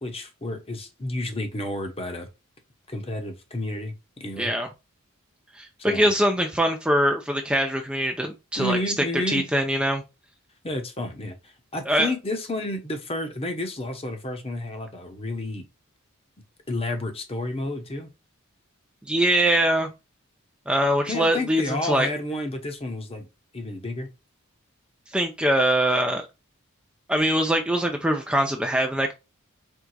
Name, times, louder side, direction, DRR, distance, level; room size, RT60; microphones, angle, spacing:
voice 1, 0.0-2.3 2.9-4.5 5.8-6.1 8.6-9.5 10.6-11.4 11.7-15.6 16.7-18.1 21.1-23.3 23.5-24.1, left 1 dB, 30° left, 1.0 m, -31 dB
voice 2, 4.4-4.7 5.6-8.8 9.3-10.0 11.9-12.1 19.1-19.9 20.7-22.1 25.1-26.3 27.1-29.1, right 1 dB, 5° right, 0.5 m, -23 dB
4.6 x 3.8 x 2.3 m
head